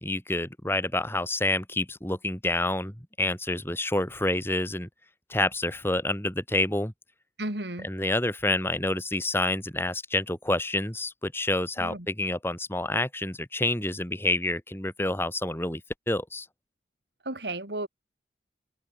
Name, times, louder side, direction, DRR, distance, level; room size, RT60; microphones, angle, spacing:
voice 1, 0.0-4.9 5.3-6.9 7.8-15.8 16.1-16.5, left 2 dB, 15° left, 3.3 m, -28 dB
voice 2, 7.4-7.9 11.8-12.1 17.2-17.9, right 1 dB, 75° right, 5.3 m, -33 dB
head